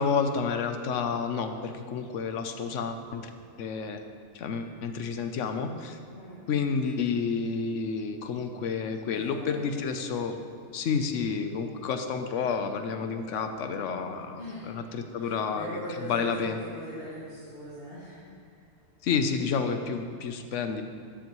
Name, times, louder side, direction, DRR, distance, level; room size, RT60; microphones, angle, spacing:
voice 1, 0.0-3.3 3.6-4.0 4.3-6.0 6.5-10.4 10.7-14.4 14.7-16.6 19.0-20.8, left 5 dB, 75° left, 7 dB, 1.1 m, -30 dB
voice 2, 6.1-6.4 9.1-9.9 14.4-14.7 15.1-18.6, equal, 50° left, -10 dB, 2.1 m, -41 dB
12.5 x 8.7 x 3.1 m, 2.5 s
omnidirectional pair, 1.3 m